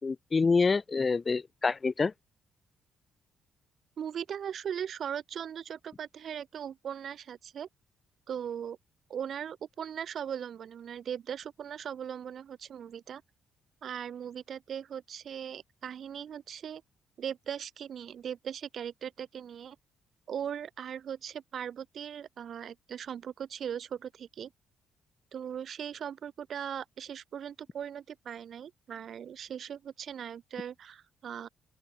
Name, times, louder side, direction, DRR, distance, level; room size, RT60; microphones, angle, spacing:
voice 1, 0.0-2.1, left 4 dB, 30° left, 3.6 m, -27 dB
voice 2, 4.0-7.7 8.3-8.8 9.1-13.2 13.8-16.8 17.2-19.8 20.3-24.5 25.3-31.5, right 8 dB, 60° right, 3.9 m, -39 dB
open air
cardioid pair, 90°, 0 cm